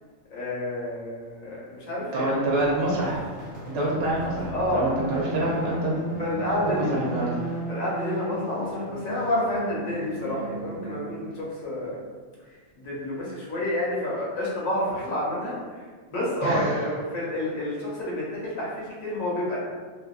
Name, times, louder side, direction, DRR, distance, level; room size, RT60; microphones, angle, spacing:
voice 1, 0.3-2.5 4.5-4.9 5.6-5.7 6.2-7.0 7.7-12.0 12.7-19.6, left 1 dB, 75° left, -6 dB, 1.1 m, -29 dB
voice 2, 2.1-3.2 3.7-6.0 6.7-7.3 16.4-16.7, right 1 dB, 60° right, -5 dB, 0.8 m, -26 dB
sound 1, 2.2-11.4, right 1 dB, 20° right, 0.6 m, -35 dB
2.8 x 2.4 x 2.3 m, 1.5 s
omnidirectional pair, 1.5 m